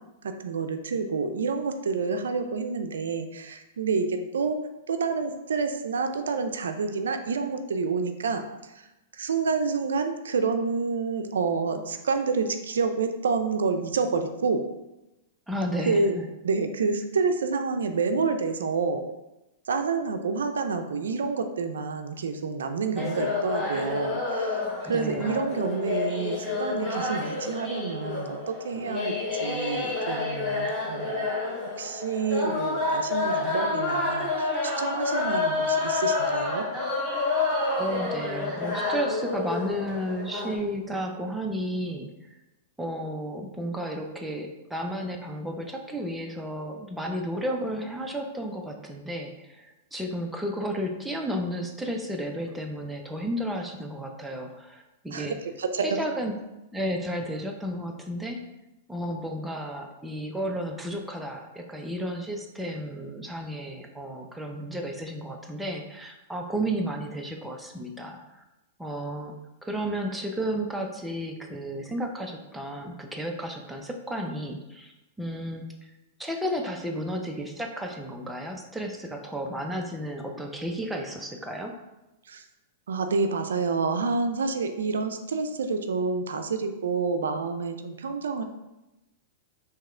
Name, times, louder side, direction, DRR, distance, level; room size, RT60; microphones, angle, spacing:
voice 1, 0.2-4.6 4.9-8.9 9.1-14.6 15.9-16.1 16.4-19.0 19.7-31.4 31.8-36.7 55.1-56.0 82.3-82.4 82.9-88.4, right 4 dB, 90° right, 7 dB, 0.4 m, -28 dB
voice 2, 15.5-16.2 24.8-25.4 37.8-42.1 42.8-55.4 55.8-56.3 56.7-58.4 58.9-68.2 68.8-69.3 69.6-74.9 75.2-75.6 76.2-81.7, equal, 5° right, 2 dB, 0.5 m, -32 dB
sound 1, 23.0-40.6, left 3 dB, 20° left, 1.3 m, -29 dB
3.6 x 2.8 x 3.2 m, 0.97 s
hypercardioid pair, 130°, 0 cm